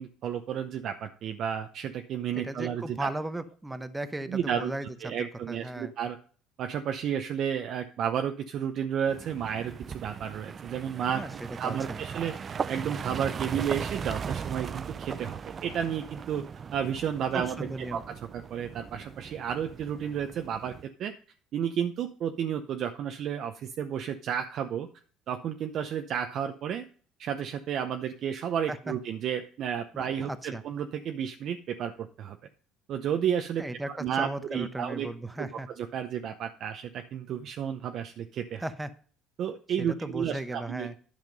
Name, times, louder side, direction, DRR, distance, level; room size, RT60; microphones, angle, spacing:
voice 1, 0.0-3.1 4.3-4.7 5.0-6.2 6.6-11.2 11.6-12.3 12.7-16.4 16.7-20.7 21.0-21.1 21.5-24.9 25.3-26.8 27.2-32.4 32.9-35.1 35.4-35.5 35.8-38.6 39.4-40.9, right 8 dB, 50° right, 6 dB, 0.8 m, -32 dB
voice 2, 2.3-5.9 11.1-11.3 11.6-12.0 17.3-18.0 28.7-28.9 29.9-30.6 33.6-35.7 38.6-38.9 39.8-40.9, right 2 dB, 10° right, 11 dB, 0.9 m, -36 dB
sound 1, 9.1-20.9, right 6 dB, 30° right, 0.4 m, -38 dB
10.5 x 5.8 x 5.3 m, 0.43 s
cardioid pair, 125°, 0 cm